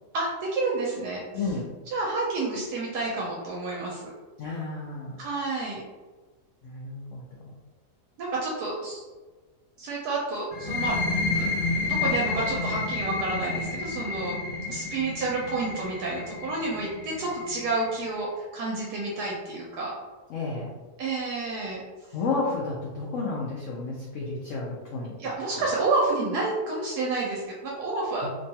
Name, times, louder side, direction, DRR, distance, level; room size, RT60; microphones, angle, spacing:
voice 1, 0.1-1.2 1.9-4.1 5.2-5.8 8.2-9.0 9.8-11.0 11.3-11.5 11.9-14.4 14.7-19.9 21.0-21.8 25.2-28.3, right 3 dB, 75° right, -3 dB, 1.1 m, -29 dB
voice 2, 1.3-1.7 4.4-5.2 6.6-7.3 20.3-20.8 22.1-25.3 25.6-25.7 28.2-28.3, left 3 dB, 70° left, -4 dB, 0.7 m, -32 dB
sound 1, 10.5-18.0, left 3 dB, 90° left, 1.3 m, -30 dB
2.9 x 2.3 x 2.7 m, 1.3 s
omnidirectional pair, 1.8 m